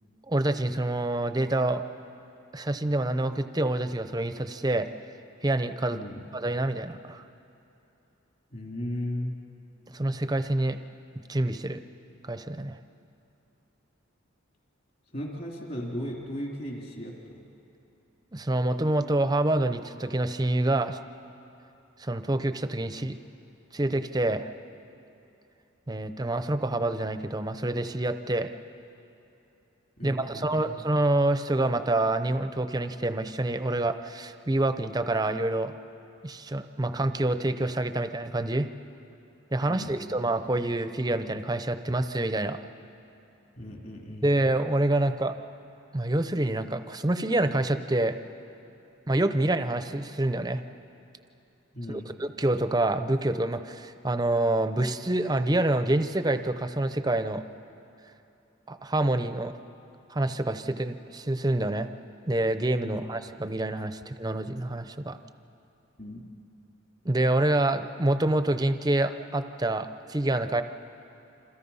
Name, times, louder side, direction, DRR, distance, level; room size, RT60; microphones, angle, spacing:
voice 1, 0.3-1.8 2.5-4.9 5.4-6.0 6.3-7.2 9.9-10.8 11.3-11.8 12.2-12.8 18.3-21.0 22.0-23.2 23.7-24.5 25.9-28.5 30.0-35.7 36.2-38.7 39.5-42.6 44.2-45.4 45.9-48.2 49.1-50.6 51.9-57.4 58.7-59.5 60.1-61.9 62.3-65.2 67.0-70.6, right 1 dB, 20° right, 10 dB, 0.7 m, -27 dB
voice 2, 5.9-6.2 8.5-9.3 15.1-17.4 30.0-30.7 39.7-40.1 43.6-44.3 51.7-52.2 62.8-63.0 66.0-66.2, equal, 45° left, -1 dB, 2.9 m, -36 dB
28.0 x 27.0 x 5.6 m, 2.9 s
head